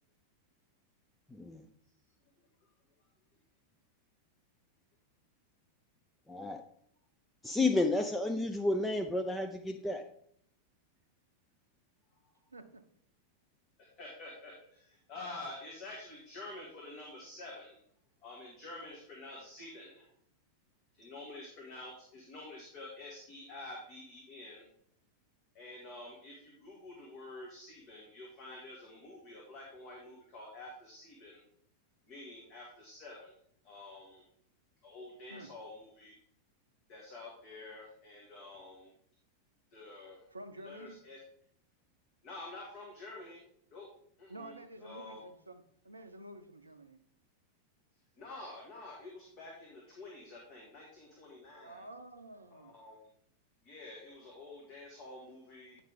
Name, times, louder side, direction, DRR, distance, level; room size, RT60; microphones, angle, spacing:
voice 1, 1.3-1.7 6.3-6.6 7.4-10.1, left 2 dB, 10° left, 6 dB, 0.5 m, -31 dB
voice 2, 2.3-2.7 12.1-12.4 14.0-17.8 18.2-20.1 20.9-24.7 25.5-31.4 32.1-34.2 34.8-36.1 36.9-38.9 39.7-40.3 40.6-41.2 42.2-43.4 43.7-43.9 44.2-45.2 47.9-51.9 52.5-53.0 53.6-55.8, left 2 dB, 40° left, -2 dB, 1.8 m, -49 dB
voice 3, 12.5-12.8 35.3-35.5 40.3-41.0 44.3-47.0 51.6-52.7, right 1 dB, 80° right, 9 dB, 0.6 m, -50 dB
9.2 x 5.2 x 3.6 m, 0.67 s
figure-of-eight pair, 90°, 0 cm